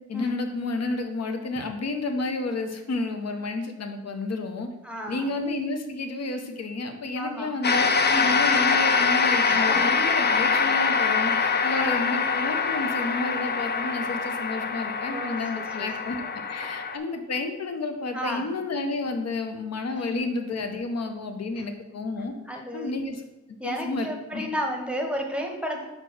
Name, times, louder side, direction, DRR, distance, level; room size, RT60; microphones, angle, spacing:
voice 1, 0.1-4.7 5.1-22.3 22.7-23.2 23.6-24.1 24.3-24.5, left 3 dB, 55° left, 5 dB, 0.9 m, -31 dB
voice 2, 4.8-5.3 7.2-7.5 8.0-8.3 9.4-9.9 11.7-12.1 15.1-15.9 18.1-18.4 20.0-20.1 22.5-22.9 23.6-25.8, equal, 5° right, 2 dB, 0.9 m, -32 dB
sound 1, 7.6-17.0, left 5 dB, 35° left, 0.4 m, -24 dB
5.1 x 4.5 x 6.0 m, 1.0 s
wide cardioid pair, 175°, 30 cm